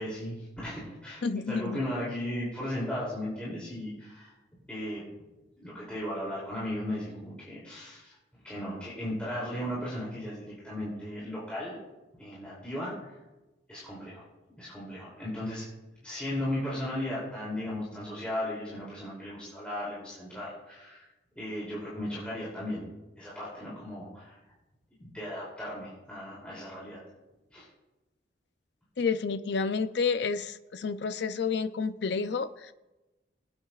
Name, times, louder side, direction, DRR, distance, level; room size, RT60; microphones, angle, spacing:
voice 1, 0.0-4.3 4.7-5.0 5.6-8.1 8.4-11.8 12.2-12.9 13.7-14.2 14.6-15.7 16.0-21.0 21.4-22.9 23.2-24.4 25.0-27.0 27.5-27.7, left 1 dB, 5° left, -8 dB, 2.8 m, -36 dB
voice 2, 1.2-1.8 29.0-32.7, left 5 dB, 65° left, 12 dB, 0.4 m, -30 dB
22.0 x 8.8 x 2.4 m, 1.1 s
head